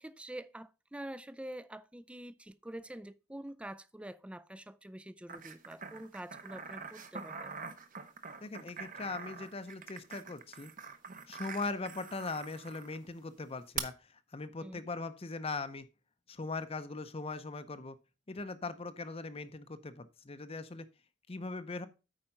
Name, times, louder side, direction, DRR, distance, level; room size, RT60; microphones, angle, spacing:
voice 1, 0.0-7.5 14.6-14.8, right 1 dB, 5° right, 0.4 m, -46 dB
sound 1, 5.3-13.0 13.8-13.9, right 6 dB, 45° right, 1.0 m, -44 dB
voice 2, 8.4-10.7 11.3-15.9 16.3-18.0 18.3-20.9 21.3-21.9, left 3 dB, 30° left, 0.7 m, -40 dB
8.8 x 4.9 x 5.4 m
head